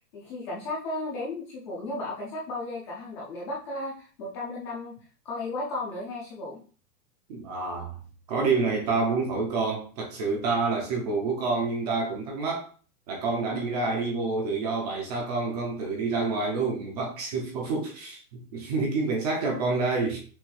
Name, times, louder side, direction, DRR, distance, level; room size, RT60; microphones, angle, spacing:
voice 1, 0.1-5.0 5.2-6.6, left 2 dB, 20° left, 0.5 m, -34 dB
voice 2, 7.3-8.0 8.3-12.7 13.1-20.2, right 3 dB, 25° right, 0.6 m, -28 dB
6.1 x 2.5 x 3.2 m
supercardioid pair, 160°, 48 cm